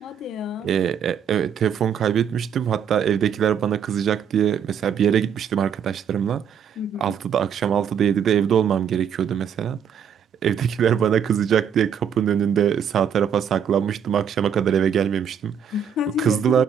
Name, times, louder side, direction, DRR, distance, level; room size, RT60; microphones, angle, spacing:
voice 1, 0.0-0.7 6.8-7.2 15.7-16.6, left 10 dB, 75° left, 0.5 m, -29 dB
voice 2, 0.6-6.6 7.0-10.1 10.4-15.7 16.2-16.6, right 8 dB, 65° right, 0.4 m, -22 dB
11.5 x 5.7 x 3.2 m
cardioid pair, 90°, 0 cm